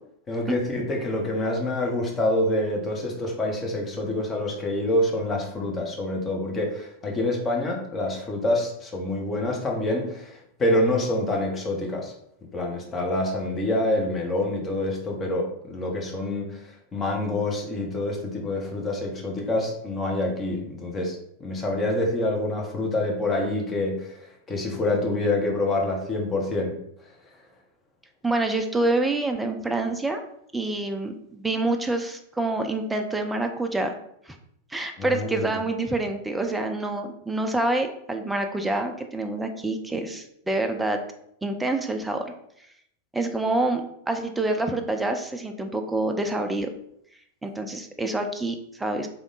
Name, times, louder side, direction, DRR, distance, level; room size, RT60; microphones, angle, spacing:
voice 1, 0.3-12.1 12.5-26.7 35.0-35.5, left 1 dB, 20° left, 0 dB, 1.1 m, -27 dB
voice 2, 28.2-30.2 30.5-33.9 34.3-34.4 34.7-41.0 41.4-42.3 43.1-46.7 47.4-49.1, right 2 dB, 10° right, 5 dB, 0.5 m, -27 dB
3.6 x 3.5 x 3.9 m, 0.75 s
figure-of-eight pair, 90°, 0 cm